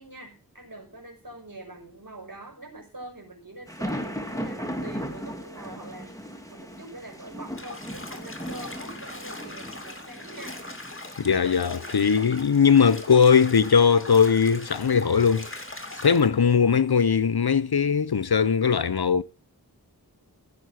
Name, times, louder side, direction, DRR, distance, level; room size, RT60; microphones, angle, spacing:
voice 1, 0.0-10.6 11.5-11.9, right 2 dB, 60° right, 5.7 m, -44 dB
sound 1, 3.7-16.2, equal, 10° left, 2.5 m, -39 dB
Bathtub (filling or washing), 7.5-16.3, left 2 dB, 35° left, 2.5 m, -41 dB
voice 2, 11.2-15.5 16.0-19.2, left 6 dB, 75° left, 0.8 m, -20 dB
16.0 x 6.6 x 6.4 m
wide cardioid pair, 40°, 38 cm